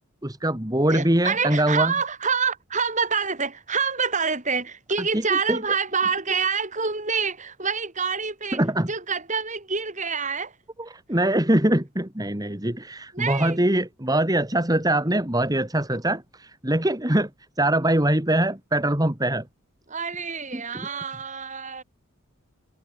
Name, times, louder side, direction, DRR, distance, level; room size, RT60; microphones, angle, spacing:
voice 1, 0.2-1.9 5.0-5.6 8.5-8.9 10.8-17.3 17.6-19.5 20.5-20.9, right 1 dB, 15° right, 2.4 m, -23 dB
voice 2, 0.9-8.6 8.9-10.5 13.1-13.6 19.9-21.8, right 5 dB, 35° right, 6.6 m, -27 dB
head